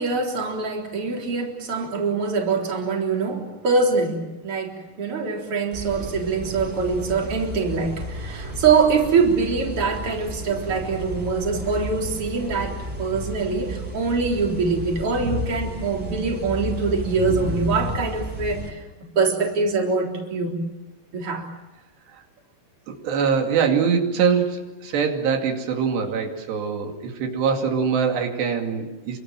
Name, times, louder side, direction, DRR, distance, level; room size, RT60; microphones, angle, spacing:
voice 1, 0.0-18.8 19.2-20.6 21.1-21.5, right 4 dB, 35° right, 1 dB, 4.5 m, -24 dB
sound 1, 5.7-18.7, equal, 10° right, 5.5 m, -32 dB
voice 2, 22.9-29.2, right 6 dB, 90° right, 3 dB, 4.6 m, -23 dB
28.5 x 25.0 x 7.5 m, 1.1 s
omnidirectional pair, 4.7 m